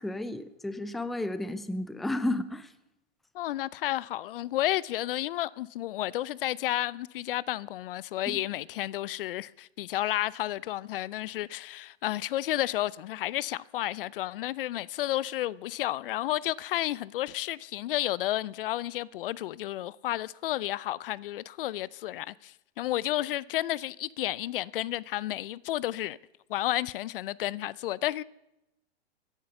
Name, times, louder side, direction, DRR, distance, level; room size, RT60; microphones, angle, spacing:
voice 1, 0.0-2.7 8.3-8.4, left 1 dB, ahead, 0.5 m, -32 dB
voice 2, 3.3-26.2 26.5-28.2, left 14 dB, 55° left, 0.5 m, -31 dB
15.5 x 10.5 x 6.8 m
hypercardioid pair, 120°, 32 cm